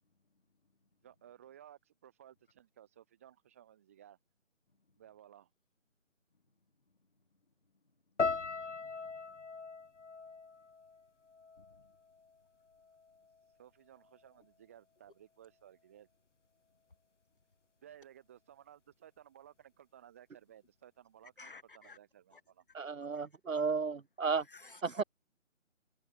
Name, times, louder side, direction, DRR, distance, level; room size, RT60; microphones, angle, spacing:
voice 1, 1.0-4.2 5.0-5.5 13.6-16.1 17.8-22.6, right 10 dB, 10° right, 5.0 m, -58 dB
sound 1, 8.2-12.4 12.7-13.4 14.0-14.3, left 4 dB, 60° left, 1.5 m, -40 dB
voice 2, 21.4-22.0 22.3-22.4 23.1-23.2 24.4-25.0, left 3 dB, 40° left, 0.9 m, -54 dB
voice 3, 22.7-24.4 24.8-25.0, right 5 dB, 75° right, 1.3 m, -33 dB
figure-of-eight pair, 180°, 40 cm